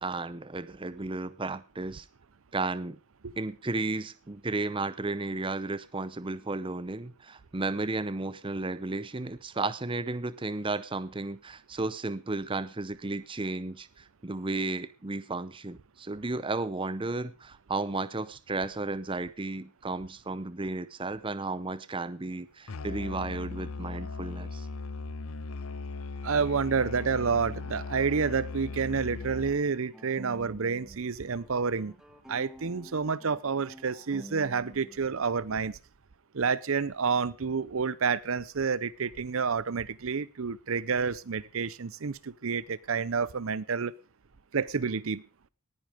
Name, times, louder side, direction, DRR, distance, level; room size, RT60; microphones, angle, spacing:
voice 1, 0.0-2.1 2.5-3.0 3.4-24.7, right 3 dB, 25° right, 15 dB, 0.7 m, -33 dB
Musical instrument, 22.7-29.7, left 4 dB, 70° left, 0.7 m, -38 dB
voice 2, 26.2-31.9 32.3-35.8 36.3-43.9 44.5-45.2, right 5 dB, 65° right, 20 dB, 0.6 m, -29 dB
sound 1, 27.6-31.0 31.3-35.1, equal, 5° right, 1.6 m, -50 dB
18.5 x 10.5 x 5.0 m, 0.34 s
head